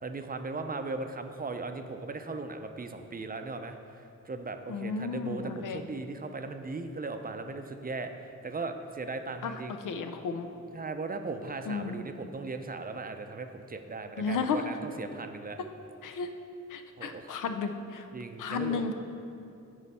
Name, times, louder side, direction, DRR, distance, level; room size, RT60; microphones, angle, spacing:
voice 1, 0.0-9.8 10.7-15.6 17.0-17.4 18.1-18.9, right 3 dB, 30° right, 7 dB, 0.5 m, -38 dB
voice 2, 4.7-5.8 9.4-9.5 9.8-10.5 11.7-12.0 14.2-14.6 16.0-16.3 16.7-18.1 18.4-18.9, left 5 dB, 85° left, 8 dB, 0.5 m, -33 dB
9.3 x 3.1 x 5.5 m, 2.7 s
cardioid pair, 70°, 31 cm